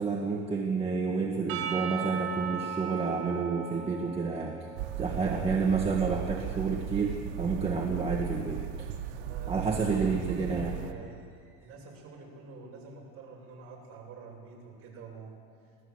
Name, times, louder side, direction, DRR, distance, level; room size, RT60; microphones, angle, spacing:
voice 1, 0.0-4.7 5.0-8.9 9.5-10.8, right 4 dB, 15° right, 0 dB, 1.5 m, -30 dB
Percussion / Church bell, 1.5-5.8, right 8 dB, 55° right, 4.0 m, -38 dB
sound 1, 4.8-10.9, right 10 dB, 75° right, 1.6 m, -36 dB
voice 2, 5.1-5.4 9.1-9.7 9.9-15.3, right 4 dB, 40° right, -3 dB, 7.5 m, -46 dB
26.5 x 17.5 x 8.1 m, 2.2 s
cardioid pair, 170°, 35 cm